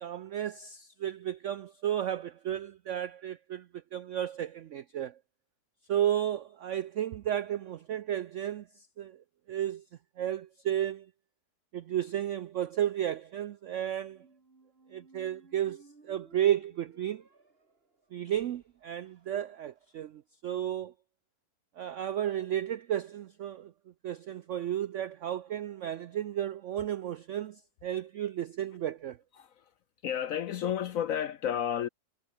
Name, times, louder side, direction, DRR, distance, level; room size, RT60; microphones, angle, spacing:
voice 1, 0.0-5.2 5.9-9.2 9.5-9.8 10.2-11.1 11.7-14.2 14.9-17.2 18.1-20.9 21.8-23.7 24.0-29.2, right 11 dB, 90° right, 0.6 m, -33 dB
Squeak, 14.0-20.0, right 3 dB, 30° right, 2.6 m, -60 dB
voice 2, 29.3-29.7 30.0-31.9, left 9 dB, 65° left, 0.8 m, -32 dB
omnidirectional pair, 2.0 m